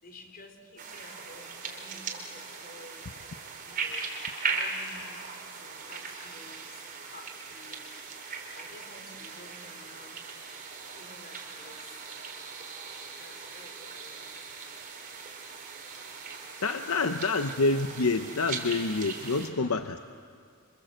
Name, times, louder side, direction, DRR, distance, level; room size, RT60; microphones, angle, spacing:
voice 1, 0.0-3.1 3.6-4.0 4.4-10.3 10.8-12.0 13.0-14.8 19.2-19.7, left 2 dB, 45° left, 4 dB, 4.2 m, -52 dB
sound 1, 0.8-19.5, right 4 dB, 40° right, 4.1 m, -39 dB
voice 2, 16.6-20.0, left 3 dB, 75° left, 7 dB, 0.9 m, -27 dB
28.5 x 26.0 x 8.0 m, 2.1 s
head